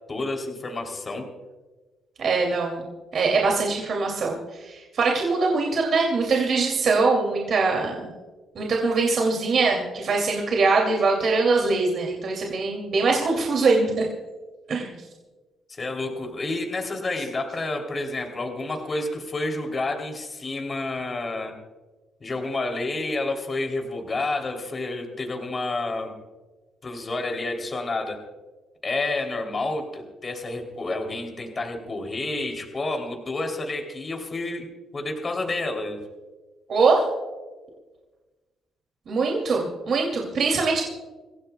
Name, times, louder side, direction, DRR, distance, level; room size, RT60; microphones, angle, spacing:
voice 1, 0.1-1.3 15.7-21.6 22.2-26.1 26.8-28.2 28.8-34.7 34.9-36.0, left 2 dB, 35° left, 3 dB, 3.1 m, -29 dB
voice 2, 2.2-2.8 3.1-8.1 8.5-14.0 14.7-15.0 36.7-37.0 39.1-40.8, right 4 dB, 55° right, 0 dB, 2.6 m, -22 dB
27.5 x 16.0 x 2.3 m, 1.3 s
cardioid pair, 90°, 0 cm